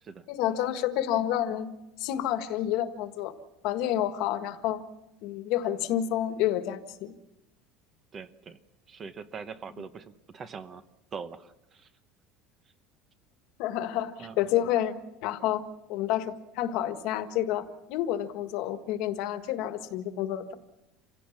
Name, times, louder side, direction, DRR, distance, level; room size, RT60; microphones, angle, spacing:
voice 1, 0.3-1.7 2.0-3.3 3.6-4.8 5.2-7.1 13.6-14.9 15.2-15.6 15.9-20.5, left 12 dB, 55° left, 9 dB, 1.6 m, -29 dB
voice 2, 8.1-8.6 8.9-10.8 11.1-11.9 14.2-14.4, right 5 dB, 20° right, 11 dB, 0.9 m, -42 dB
28.0 x 17.0 x 7.3 m, 0.96 s
cardioid pair, 175°, 0 cm